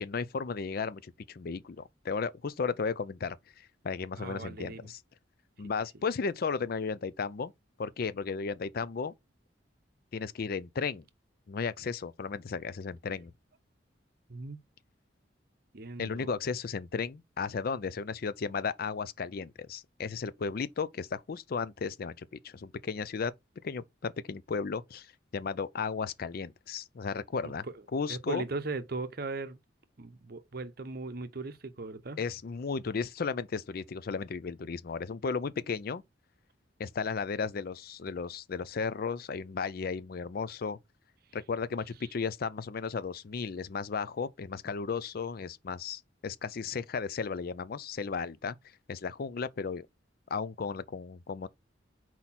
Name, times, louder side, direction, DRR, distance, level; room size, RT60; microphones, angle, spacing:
voice 1, 0.0-5.0 5.6-7.5 7.8-9.1 10.1-11.0 11.5-13.3 16.0-23.3 23.6-27.7 27.9-28.4 32.2-36.0 36.8-40.8 41.3-48.6 48.9-49.9 50.3-51.5, left 5 dB, 50° left, 0.4 m, -34 dB
voice 2, 4.2-4.9 14.3-14.6 15.7-16.3 27.4-27.8 28.1-29.6 30.0-32.2, right 3 dB, 55° right, 0.8 m, -38 dB
4.5 x 4.2 x 5.7 m
head